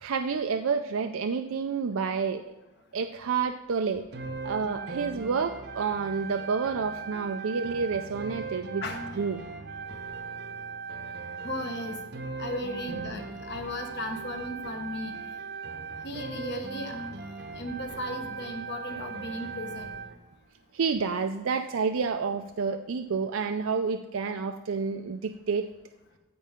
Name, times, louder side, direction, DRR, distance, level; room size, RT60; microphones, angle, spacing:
voice 1, 0.0-2.4 2.9-4.0 4.4-8.8 9.2-9.4 20.7-25.7, right 5 dB, 75° right, 7 dB, 0.4 m, -29 dB
sound 1, 4.1-20.2, right 4 dB, 50° right, 0.8 m, -38 dB
voice 2, 8.8-9.3 11.4-12.0 12.4-15.4 16.0-17.0 17.5-19.9, left 1 dB, 55° left, 4 dB, 1.3 m, -36 dB
15.0 x 5.5 x 3.6 m, 1.1 s
head